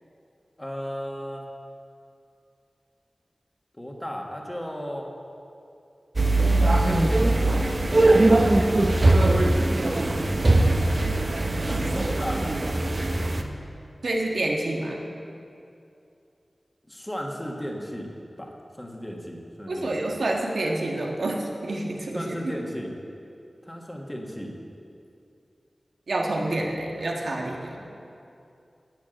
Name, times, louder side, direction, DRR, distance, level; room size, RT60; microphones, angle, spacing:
voice 1, 0.6-1.5 3.8-5.1 7.7-10.1 11.6-12.8 16.9-18.1 18.4-20.1 22.1-22.9 23.6-24.6, equal, 15° left, 0 dB, 1.6 m, -36 dB
sound 1, 6.2-13.4, right 2 dB, 45° right, 0.9 m, -21 dB
voice 2, 14.0-15.0 19.7-22.5 26.1-27.8, right 2 dB, 90° right, 0 dB, 1.6 m, -28 dB
9.6 x 9.1 x 7.9 m, 2.6 s
wide cardioid pair, 75°, 0 cm